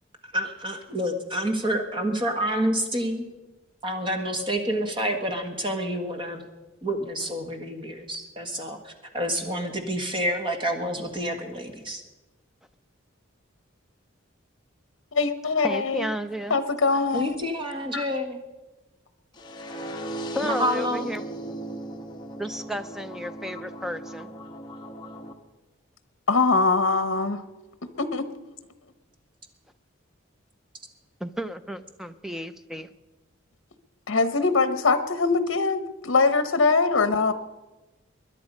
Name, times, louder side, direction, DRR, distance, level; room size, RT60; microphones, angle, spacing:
voice 1, 0.3-3.3 3.8-6.4 6.8-12.0 17.1-18.4 20.4-21.1, equal, 25° right, 5 dB, 1.6 m, -28 dB
voice 2, 15.1-16.1 16.5-17.4 17.9-18.1 26.3-27.4 28.0-28.2 34.1-37.3, left 4 dB, 65° left, 11 dB, 0.9 m, -22 dB
voice 3, 15.6-16.6 20.3-21.2 22.4-24.3 31.2-32.9, equal, ahead, 11 dB, 0.5 m, -33 dB
sound 1, 19.3-25.3, right 1 dB, 20° left, 1.2 m, -37 dB
21.5 x 10.5 x 5.3 m, 1.1 s
head